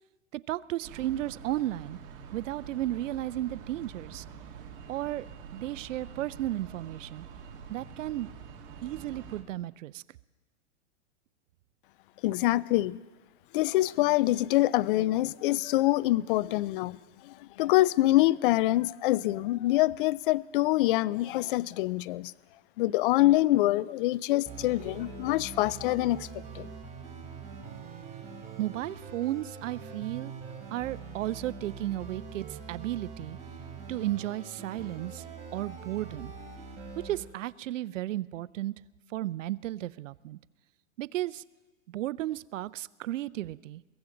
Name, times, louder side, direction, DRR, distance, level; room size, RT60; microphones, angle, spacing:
voice 1, 0.3-2.0 2.3-4.2 4.9-5.3 5.5-7.2 7.7-8.3 8.8-10.0 28.6-30.3 30.7-33.4 33.9-35.2 35.5-36.3 37.0-38.7 39.1-40.4 41.0-41.4 41.9-43.8, right 14 dB, 80° right, 0.6 m, -34 dB
sound 1, 0.8-9.4, right 6 dB, 45° right, 2.3 m, -46 dB
voice 2, 12.2-13.0 13.5-17.0 17.2-22.3 22.8-26.7, left 17 dB, 45° left, 0.4 m, -25 dB
sound 2, 24.5-37.2, right 5 dB, 20° right, 3.7 m, -43 dB
23.0 x 16.0 x 3.9 m
hypercardioid pair, 135°, 37 cm